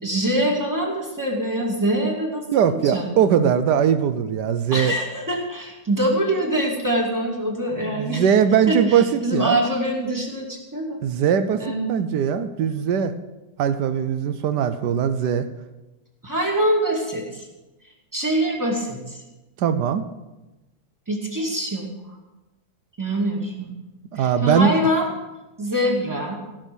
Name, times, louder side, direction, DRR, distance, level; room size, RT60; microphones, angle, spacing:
voice 1, 0.0-3.1 4.7-8.2 8.7-11.0 11.6-12.0 16.2-17.5 18.1-19.2 21.1-21.9 23.0-23.8 24.2-25.1 25.6-26.4, right 1 dB, 10° right, 0 dB, 2.2 m, -24 dB
voice 2, 2.5-4.9 7.8-9.6 11.0-11.6 11.9-13.1 13.6-15.5 19.6-20.0 24.1-24.8, right 8 dB, 85° right, 10 dB, 1.3 m, -20 dB
16.0 x 6.3 x 7.0 m, 1.1 s
omnidirectional pair, 1.8 m